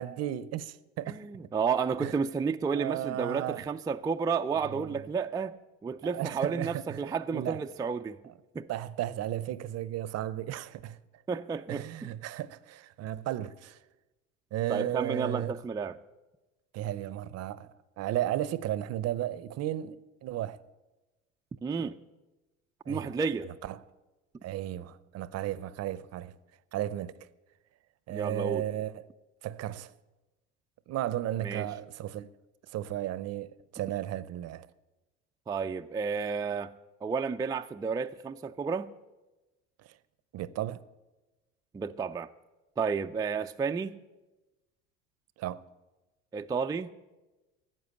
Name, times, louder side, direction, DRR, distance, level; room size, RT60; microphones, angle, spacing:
voice 1, 0.0-1.5 2.0-2.1 2.7-3.6 4.7-5.0 6.0-7.0 7.3-7.6 8.7-11.0 11.7-13.8 14.5-15.5 16.7-20.0 20.2-20.6 22.9-23.2 23.4-23.8 24.4-26.4 26.7-27.3 28.1-28.9 29.4-29.9 30.9-32.3 32.7-34.7 39.8-39.9 40.3-40.8 45.4-45.6, right 13 dB, 50° right, 0.6 m, -34 dB
voice 2, 1.1-5.5 5.8-8.2 8.5-8.7 11.3-12.1 14.7-16.0 21.6-22.0 22.9-23.5 28.1-28.6 31.4-31.7 35.5-36.7 37.0-38.9 41.7-42.3 42.8-44.0 46.3-46.9, right 5 dB, 10° right, 0.3 m, -31 dB
13.0 x 7.8 x 8.2 m
supercardioid pair, 85°, 32 cm